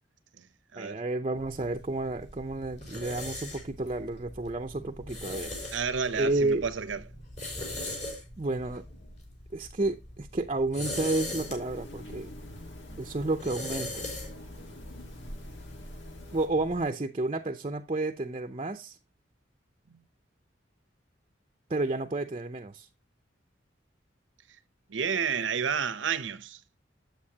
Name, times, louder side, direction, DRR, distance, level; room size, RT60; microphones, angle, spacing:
voice 1, 0.8-5.7 6.1-6.7 7.8-8.1 8.4-8.8 9.5-12.3 13.0-14.1 16.3-19.0 21.7-22.9, right 2 dB, 30° right, 0.6 m, -31 dB
sound 1, 1.4-16.8, left 1 dB, 40° left, 3.7 m, -41 dB
voice 2, 5.7-7.0 19.9-20.0 24.9-26.6, right 6 dB, 85° right, 0.7 m, -31 dB
sound 2, 11.1-16.5, left 1 dB, 85° left, 1.7 m, -46 dB
8.6 x 7.9 x 2.8 m
head